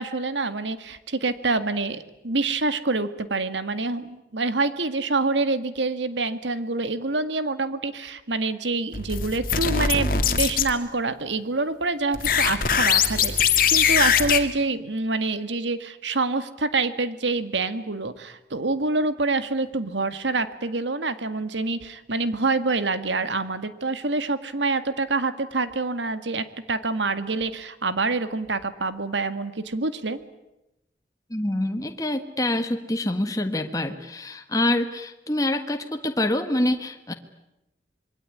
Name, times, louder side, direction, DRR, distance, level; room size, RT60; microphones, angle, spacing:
voice 1, 0.0-30.2, right 3 dB, 80° right, 11 dB, 1.9 m, -26 dB
sound 1, 8.9-10.7 12.1-14.4, left 7 dB, 50° left, 2.1 m, -21 dB
voice 2, 31.3-37.1, left 1 dB, 20° left, 6 dB, 1.5 m, -26 dB
26.5 x 22.5 x 9.8 m, 0.94 s
head